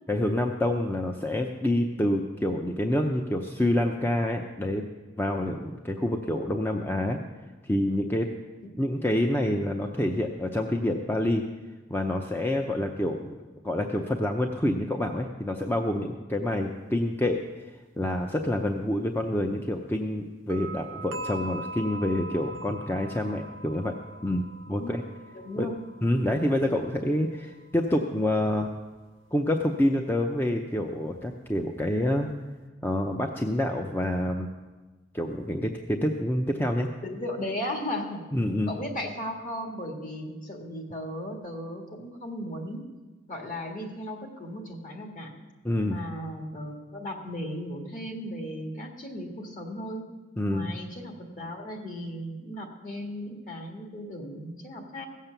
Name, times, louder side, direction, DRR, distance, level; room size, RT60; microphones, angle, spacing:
voice 1, 0.1-4.9 5.2-7.2 7.6-8.3 8.8-11.4 11.9-13.4 13.6-17.6 18.0-25.0 25.6-25.7 26.0-28.7 29.3-32.3 32.8-34.5 35.1-36.9 38.3-38.7 45.6-46.0 50.4-50.7, left 1 dB, 10° left, 3 dB, 0.5 m, -27 dB
sound 1, 20.5-28.4, right 1 dB, 75° right, 0.6 m, -42 dB
voice 2, 25.3-25.7 37.0-38.2 38.7-42.9 43.3-45.3 45.8-50.1 50.5-55.1, equal, 40° left, 2 dB, 1.8 m, -36 dB
16.5 x 7.4 x 6.8 m, 1.2 s
head